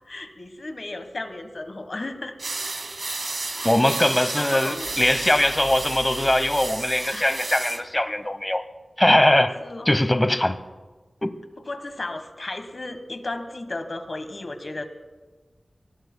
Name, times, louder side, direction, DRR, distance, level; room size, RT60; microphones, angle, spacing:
voice 1, 0.1-2.3 3.9-4.0 4.4-4.9 7.1-7.3 9.6-9.9 11.7-14.9, left 2 dB, 50° left, 8 dB, 1.3 m, -34 dB
sound 1, 2.4-7.8, right 3 dB, 60° right, 1.0 m, -32 dB
voice 2, 3.6-8.6 9.0-9.6 9.9-10.6 11.2-11.3, left 1 dB, 20° left, 11 dB, 0.9 m, -21 dB
sound 2, 4.7-7.1, right 3 dB, 30° right, 3.2 m, -43 dB
23.5 x 18.5 x 2.2 m, 1.3 s
wide cardioid pair, 80°, 0 cm